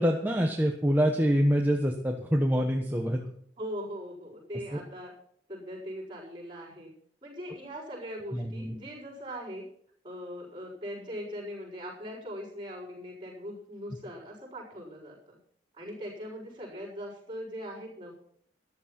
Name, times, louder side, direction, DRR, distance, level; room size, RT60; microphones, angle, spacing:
voice 1, 0.0-3.2 8.3-8.7, equal, 10° right, 1 dB, 1.2 m, -25 dB
voice 2, 3.6-5.1 5.5-6.9 7.2-9.7 10.0-15.4 15.8-18.1, equal, 25° right, -7 dB, 6.0 m, -40 dB
13.5 x 11.5 x 6.0 m, 0.63 s
head